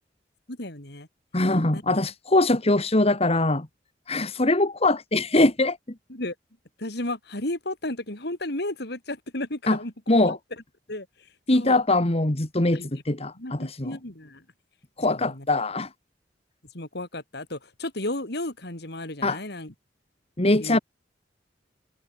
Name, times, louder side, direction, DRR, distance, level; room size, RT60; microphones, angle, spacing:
voice 1, 0.5-1.1 1.7-1.8 6.1-6.3 6.8-9.9 10.2-10.4 10.9-11.1 11.5-11.8 12.7-12.9 13.3-14.4 15.1-15.5 16.7-19.7 20.5-20.8, left 1 dB, 65° left, 4.5 m, -33 dB
voice 2, 1.3-3.7 4.1-5.8 9.7-9.8 10.1-10.4 11.5-14.0 15.0-15.9 19.2-19.4 20.4-20.8, left 2 dB, 35° left, 2.1 m, -22 dB
head